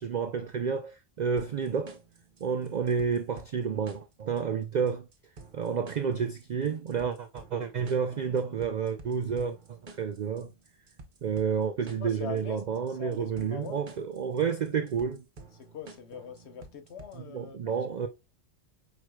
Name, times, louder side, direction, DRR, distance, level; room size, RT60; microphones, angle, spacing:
voice 1, 0.0-2.0 2.4-5.1 5.5-10.5 11.2-15.2 17.3-18.1, right 6 dB, 65° right, 0.4 m, -30 dB
sound 1, 1.4-17.4, right 3 dB, 45° right, 1.0 m, -52 dB
voice 2, 12.0-12.6 12.9-13.8 15.5-17.7, left 7 dB, 65° left, 1.1 m, -42 dB
4.7 x 4.6 x 2.3 m
omnidirectional pair, 1.2 m